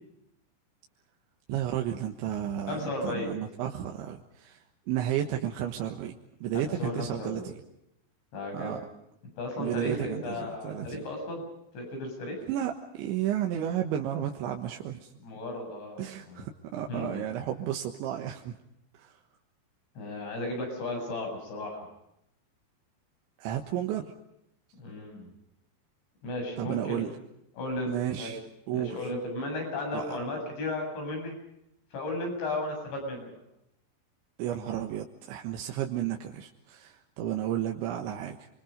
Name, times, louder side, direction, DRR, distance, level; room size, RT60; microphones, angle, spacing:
voice 1, 1.5-7.5 8.5-8.8 9.6-11.0 12.5-15.1 16.0-18.5 19.0-19.2 23.4-24.0 26.6-27.1 27.9-28.4 28.7-29.0 29.9-30.2 34.4-38.5, right 11 dB, 90° right, 2 dB, 3.8 m, -32 dB
voice 2, 2.7-3.5 6.5-7.5 8.3-8.8 9.4-11.4 11.7-12.4 15.2-16.4 16.9-17.2 20.0-21.9 24.8-25.3 26.2-27.1 27.6-28.3 28.7-31.3 31.9-33.3, left 2 dB, 75° left, 3 dB, 9.8 m, -35 dB
30.0 x 24.5 x 5.2 m, 0.79 s
omnidirectional pair, 5.1 m